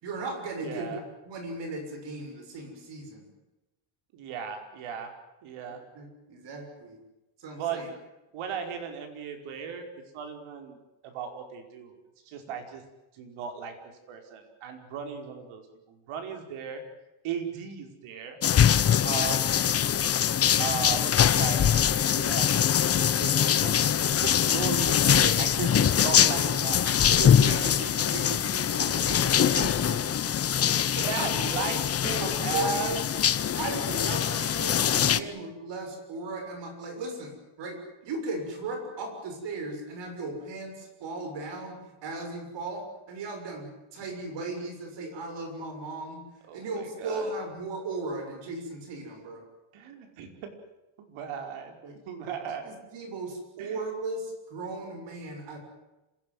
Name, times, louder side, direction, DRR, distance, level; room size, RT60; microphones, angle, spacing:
voice 1, 0.0-3.3 5.9-7.0 7.4-7.9 25.1-25.4 25.7-29.7 30.4-31.4 31.7-31.9 32.2-33.0 33.6-37.8 38.0-46.2 46.5-49.4 51.8-51.9 52.6-55.6, right 2 dB, 60° right, 5 dB, 6.8 m, -37 dB
voice 2, 0.6-1.0 4.1-5.1 5.4-5.8 7.5-7.8 8.3-10.8 11.0-12.0 12.3-12.8 13.1-13.7 14.1-15.6 15.9-16.8 17.2-18.4 19.0-19.8 20.6-23.8 24.2-26.9 29.6-30.0 31.1-31.8 32.0-33.1 35.1-35.3 46.5-47.3 49.7-50.5 51.0-51.8 52.1-52.8 53.6-53.8, right 6 dB, 80° right, 5 dB, 5.1 m, -36 dB
sound 1, 18.4-35.2, left 9 dB, 30° left, 0.8 m, -23 dB
27.0 x 16.5 x 9.5 m, 1.0 s
cardioid pair, 155°, 49 cm